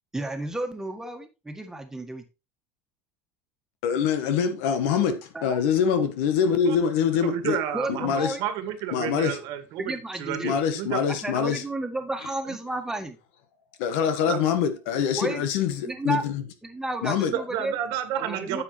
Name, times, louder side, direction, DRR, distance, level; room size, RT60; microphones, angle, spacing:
voice 1, 0.1-2.2 5.3-5.6 7.7-8.4 9.8-10.6 11.1-13.2 15.2-15.4 15.8-16.2 16.6-17.8 18.2-18.6, right 2 dB, 5° right, 1.8 m, -32 dB
voice 2, 3.8-7.6 7.9-8.4 8.9-9.4 10.4-11.6 13.8-16.4 17.0-17.3, left 7 dB, 75° left, 1.6 m, -24 dB
voice 3, 7.2-11.0 12.4-12.6 14.3-14.4 17.3-18.6, right 10 dB, 65° right, 1.6 m, -31 dB
9.6 x 7.4 x 3.2 m
supercardioid pair, 115°, 7 cm